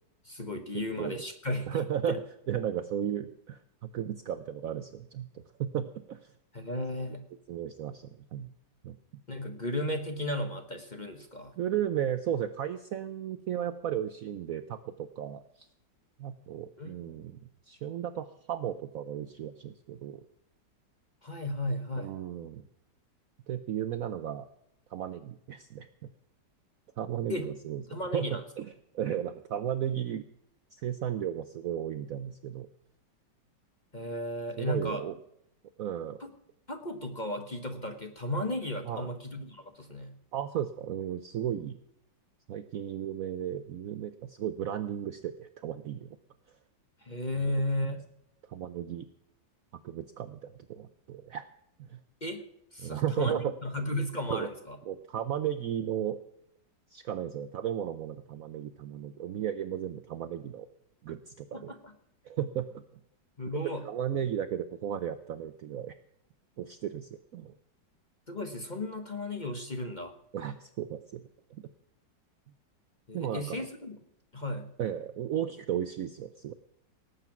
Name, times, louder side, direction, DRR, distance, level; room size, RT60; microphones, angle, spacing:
voice 1, 0.2-2.2 6.5-7.3 9.3-11.5 16.8-17.3 21.2-22.1 27.3-27.5 27.9-28.4 33.9-35.0 36.2-36.3 36.7-40.2 47.0-48.0 52.2-52.4 52.7-54.8 61.5-61.9 63.4-63.8 68.3-70.1 73.1-74.0 74.3-74.7, left 1 dB, 30° left, 6 dB, 1.0 m, -35 dB
voice 2, 1.7-2.2 2.5-6.3 7.5-8.5 8.8-9.0 11.6-15.7 16.2-17.4 17.7-20.2 22.0-22.6 23.5-24.5 24.9-26.1 27.0-30.2 30.7-32.7 34.6-35.1 35.8-36.2 38.8-39.1 40.3-41.8 42.5-46.1 47.4-47.5 48.5-49.1 49.8-51.5 51.8-52.0 52.8-53.5 54.3-54.5 54.9-56.2 56.9-60.7 61.0-61.7 62.2-62.8 63.8-66.0 66.6-67.5 70.3-71.2 71.5-71.6 73.1-73.6 74.8-76.5, right 10 dB, 70° right, 12 dB, 0.8 m, -34 dB
18.0 x 8.2 x 5.9 m, 0.77 s
omnidirectional pair, 2.0 m